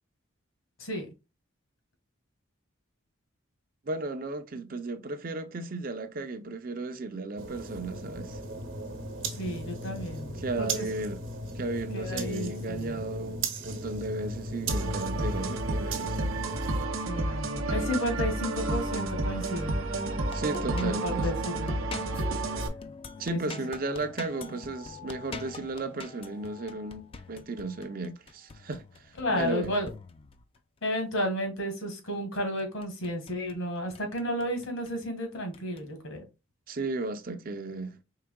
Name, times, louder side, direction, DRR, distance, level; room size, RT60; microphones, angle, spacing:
voice 1, 3.9-8.4 10.3-11.2 11.6-16.2 20.3-21.3 23.2-28.8 29.3-29.7 36.7-38.0, right 2 dB, 45° right, 0.5 m, -34 dB
sound 1, 7.4-16.9, right 2 dB, 65° right, 1.0 m, -37 dB
voice 2, 9.4-10.8 11.9-13.0 17.1-19.7 20.7-21.7 23.3-23.6 29.2-29.9 30.8-36.2, equal, 80° left, 1.6 m, -32 dB
sound 2, 14.7-22.7, right 2 dB, 80° right, 0.7 m, -31 dB
sound 3, 19.9-30.6 32.4-33.6 33.9-35.0 35.5-35.9, left 4 dB, 25° left, 0.3 m, -45 dB
4.8 x 3.4 x 2.2 m
head